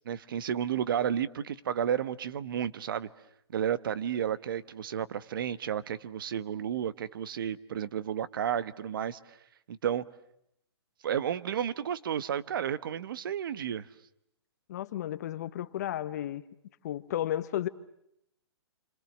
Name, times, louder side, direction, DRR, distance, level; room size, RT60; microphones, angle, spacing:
voice 1, 0.0-3.1 3.5-9.2 9.7-10.0 11.0-13.8, right 9 dB, 50° right, 1.3 m, -32 dB
voice 2, 14.7-16.4 16.8-17.7, left 12 dB, 40° left, 1.2 m, -33 dB
30.0 x 25.5 x 7.5 m
hypercardioid pair, 165°, 14 cm